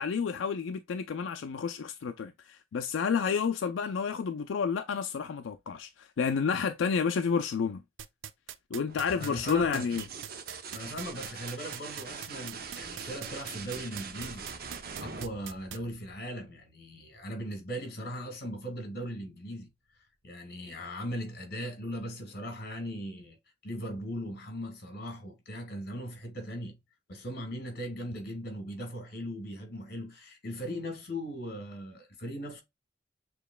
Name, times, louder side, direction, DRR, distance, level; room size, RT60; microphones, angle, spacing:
voice 1, 0.0-7.8 8.7-10.0, left 6 dB, 85° left, 0.4 m, -30 dB
sound 1, 8.0-15.8, right 10 dB, 80° right, 0.5 m, -41 dB
sound 2, 8.9-16.5 18.2-18.8, right 5 dB, 55° right, 0.8 m, -43 dB
voice 2, 9.2-9.9 10.7-14.5 15.0-19.7 20.2-23.4 23.6-26.8 27.1-32.6, equal, 55° left, 1.8 m, -39 dB
6.8 x 3.1 x 2.2 m
head